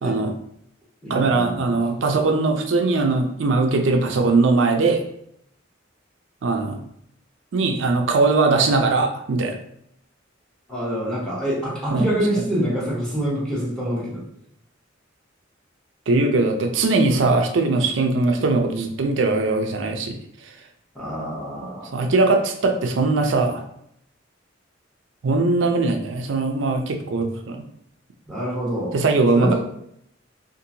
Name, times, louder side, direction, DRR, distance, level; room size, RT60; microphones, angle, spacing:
voice 1, 0.0-0.3 1.1-5.0 6.4-6.8 7.5-9.6 11.9-12.1 12.4-12.5 16.1-20.2 21.9-23.6 25.2-27.7 28.9-29.5, right 3 dB, 75° right, 5 dB, 0.4 m, -20 dB
voice 2, 1.0-1.8 10.7-14.2 20.9-22.1 28.3-29.0 29.3-29.5, right 1 dB, 5° left, -6 dB, 0.9 m, -26 dB
2.8 x 2.5 x 2.6 m, 0.73 s
head